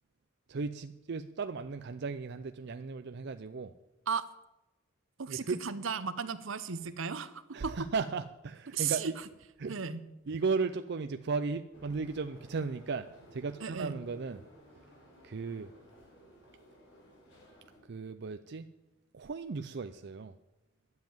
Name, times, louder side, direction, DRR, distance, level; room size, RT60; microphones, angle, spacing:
voice 1, 0.5-3.7 5.3-5.6 7.5-9.2 9.6-9.9 10.3-14.4 15.2-15.7 17.8-18.7 19.1-20.4, right 4 dB, 55° right, 9 dB, 0.5 m, -36 dB
voice 2, 5.2-7.7 8.7-9.1 9.7-10.0 13.6-13.9, right 6 dB, 75° right, 13 dB, 0.9 m, -35 dB
sound 1, 11.7-17.8, equal, 65° left, 5.9 m, -57 dB
12.0 x 7.6 x 9.0 m, 0.96 s
head